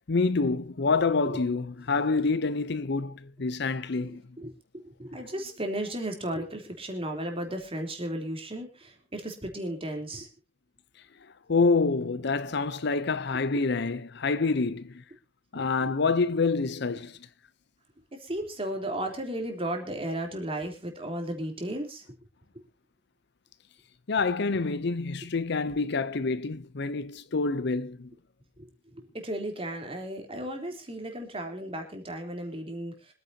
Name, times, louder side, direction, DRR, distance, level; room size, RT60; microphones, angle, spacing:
voice 1, 0.1-4.2 11.5-15.0 15.5-17.2 24.1-28.1, left 4 dB, 65° left, 0.7 m, -27 dB
voice 2, 4.7-10.3 15.6-15.9 18.1-22.0 28.6-28.7 28.9-33.1, right 1 dB, 30° right, 3.5 m, -35 dB
25.5 x 9.7 x 2.8 m
head